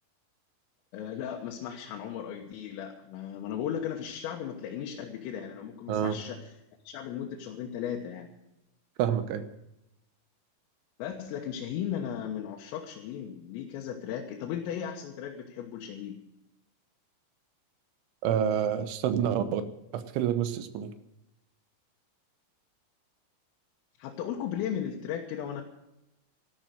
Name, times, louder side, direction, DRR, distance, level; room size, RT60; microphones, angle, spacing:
voice 1, 0.9-6.5 6.9-8.3 11.0-16.2 24.0-25.6, left 9 dB, 90° left, 0 dB, 3.9 m, -36 dB
voice 2, 9.0-9.4 18.2-19.6 19.9-20.9, right 9 dB, 75° right, 11 dB, 3.3 m, -28 dB
13.5 x 12.0 x 7.6 m, 0.87 s
omnidirectional pair, 5.7 m